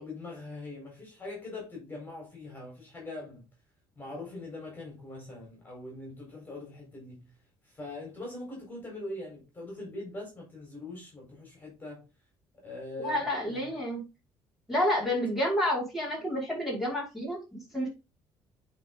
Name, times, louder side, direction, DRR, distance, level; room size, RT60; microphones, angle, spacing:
voice 1, 0.0-3.5 4.0-7.3 7.6-12.1 12.6-13.6, left 2 dB, 20° left, 4.5 m, -42 dB
voice 2, 13.0-14.0 14.7-17.9, left 1 dB, ahead, 5.2 m, -29 dB
9.4 x 4.7 x 3.8 m
cardioid pair, 135°, 9 cm